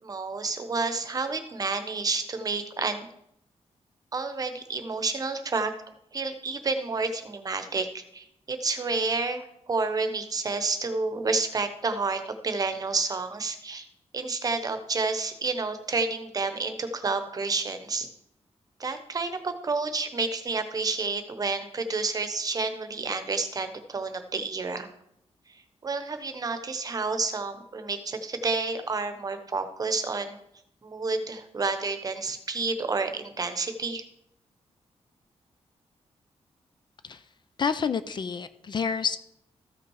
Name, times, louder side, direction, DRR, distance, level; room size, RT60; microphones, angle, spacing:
voice 1, 0.0-3.1 4.1-5.7 6.1-13.9 14.1-18.1 18.8-24.9 25.8-30.4 30.8-34.0, right 3 dB, 35° right, 8 dB, 1.0 m, -30 dB
voice 2, 37.6-39.2, left 6 dB, 40° left, 13 dB, 0.5 m, -28 dB
14.0 x 5.9 x 4.7 m, 0.75 s
wide cardioid pair, 175°, 11 cm